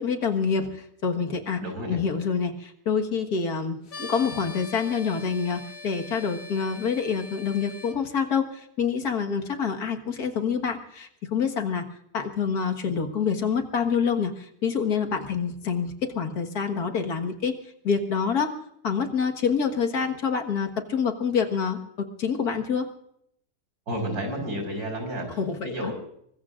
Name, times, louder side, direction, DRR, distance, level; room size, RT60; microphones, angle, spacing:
voice 1, 0.0-1.6 1.9-11.8 12.1-17.6 17.8-18.5 18.8-22.9 25.4-25.9, left 6 dB, 75° left, 4 dB, 2.1 m, -27 dB
voice 2, 1.6-2.0 23.9-25.9, equal, 85° right, 4 dB, 5.5 m, -31 dB
sound 1, 3.9-7.9, left 3 dB, 60° left, 1.9 m, -42 dB
24.0 x 21.0 x 2.5 m, 0.71 s
omnidirectional pair, 1.6 m